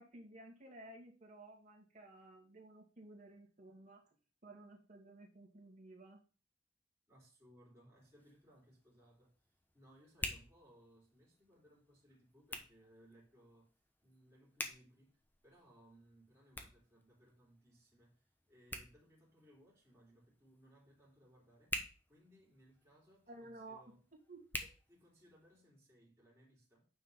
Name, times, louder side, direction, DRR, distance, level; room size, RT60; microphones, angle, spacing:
voice 1, 0.0-4.0 4.4-6.2 23.3-24.0 24.3-24.7, right 2 dB, 45° right, 2.5 m, -55 dB
voice 2, 7.1-9.4 9.7-13.7 14.0-21.8 22.1-24.0 24.9-26.9, equal, 15° right, 3.7 m, -65 dB
Hands, 7.9-25.6, left 1 dB, 10° left, 1.1 m, -50 dB
9.2 x 4.7 x 5.5 m
head